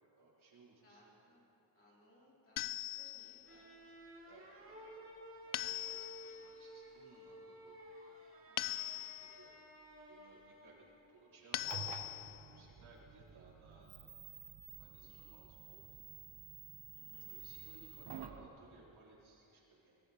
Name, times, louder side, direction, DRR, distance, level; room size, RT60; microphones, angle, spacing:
voice 1, 0.2-1.0 4.1-5.1 5.5-8.2 8.5-9.5 9.8-14.2 14.7-16.0 17.3-20.0, right 3 dB, 85° right, -6 dB, 4.3 m, -63 dB
voice 2, 0.8-1.4 1.7-4.0 8.5-8.8 16.9-17.3, left 1 dB, 25° left, -6 dB, 4.1 m, -66 dB
sound 1, 2.6-3.5 5.5-6.4 8.6-9.5 11.5-12.5, left 15 dB, 90° left, 0.5 m, -41 dB
sound 2, 3.4-10.9, equal, 25° right, 2.5 m, -54 dB
sound 3, 11.5-18.5, right 8 dB, 60° right, 1.0 m, -51 dB
22.0 x 14.0 x 4.4 m, 3.0 s
wide cardioid pair, 160°, 47 cm